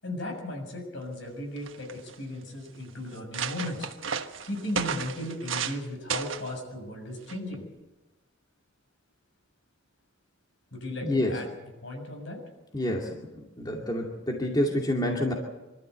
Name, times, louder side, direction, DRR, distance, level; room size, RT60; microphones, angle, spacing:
voice 1, 0.0-3.9 4.4-7.7 10.7-11.5 11.8-12.4, left 1 dB, 65° left, 3 dB, 6.9 m, -36 dB
sound 1, 1.2-1.3 1.6-2.1 2.7-2.8 3.1-5.8 6.1-6.5 7.3-7.5, right 6 dB, 80° right, 1.3 m, -33 dB
voice 2, 11.0-11.3 12.7-13.3 13.6-15.3, left 1 dB, 20° left, 0 dB, 2.4 m, -27 dB
25.5 x 13.5 x 8.2 m, 1.1 s
head